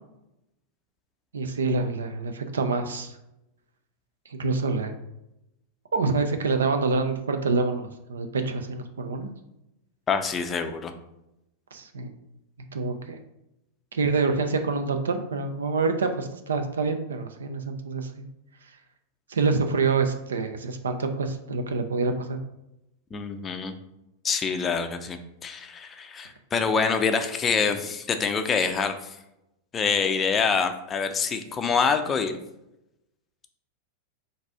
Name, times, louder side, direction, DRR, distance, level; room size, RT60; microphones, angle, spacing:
voice 1, 1.3-3.1 4.3-4.9 5.9-9.3 11.7-12.1 12.7-13.2 13.9-18.1 19.3-22.4, right 4 dB, 70° right, 6 dB, 0.5 m, -26 dB
voice 2, 10.1-10.9 23.1-23.7 24.2-29.2 29.7-32.4, left 5 dB, 20° left, 7 dB, 0.4 m, -26 dB
4.0 x 2.6 x 4.6 m, 0.88 s
figure-of-eight pair, 90°, 0 cm